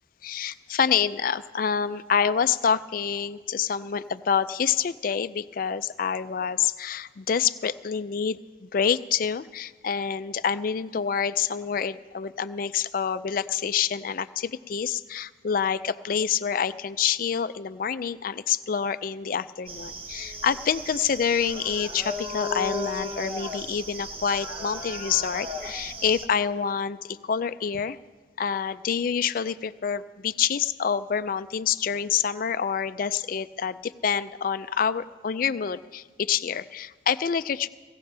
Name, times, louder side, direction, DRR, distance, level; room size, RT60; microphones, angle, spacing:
voice 1, 0.2-28.0 28.4-37.7, left 7 dB, 45° left, 13 dB, 0.4 m, -27 dB
sound 1, 19.7-26.3, left 1 dB, 30° right, 0.9 m, -36 dB
18.0 x 15.5 x 3.3 m, 1.4 s
head